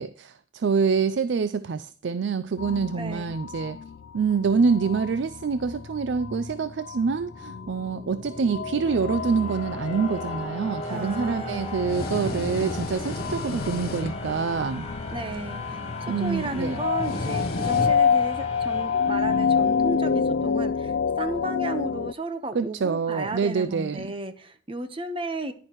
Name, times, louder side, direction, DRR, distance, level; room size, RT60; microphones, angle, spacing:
voice 1, 0.0-3.8 4.1-14.9 16.1-16.8 22.5-24.1, right 5 dB, 75° right, 0.4 m, -26 dB
sound 1, 2.6-22.1, left 6 dB, 70° left, 0.4 m, -29 dB
voice 2, 3.0-3.3 10.9-11.7 15.1-25.5, right 2 dB, 30° right, 1.0 m, -34 dB
sound 2, 7.0-19.9, left 1 dB, 30° left, 1.8 m, -37 dB
sound 3, 10.8-18.3, left 2 dB, 50° left, 0.8 m, -35 dB
10.5 x 10.5 x 3.1 m
head